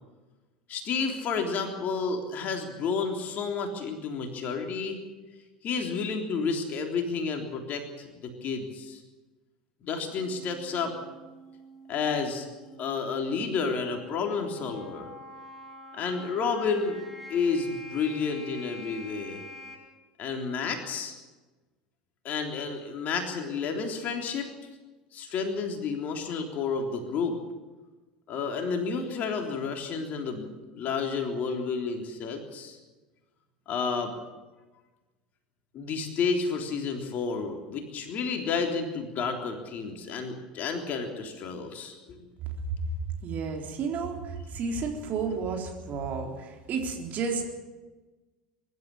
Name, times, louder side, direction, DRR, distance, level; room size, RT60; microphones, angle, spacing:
voice 1, 0.7-5.0 5.6-9.0 9.8-10.9 11.9-12.5 12.8-15.1 15.9-17.0 17.3-19.4 20.2-21.1 22.2-24.5 25.1-27.4 28.3-32.8 33.7-34.1 35.7-42.3, left 5 dB, 40° left, 4 dB, 3.5 m, -31 dB
sound 1, 10.1-19.7, equal, ahead, 7.3 m, -47 dB
voice 2, 43.2-47.4, right 5 dB, 40° right, 2 dB, 3.8 m, -32 dB
24.0 x 12.5 x 9.9 m, 1.2 s
figure-of-eight pair, 70°, 4 cm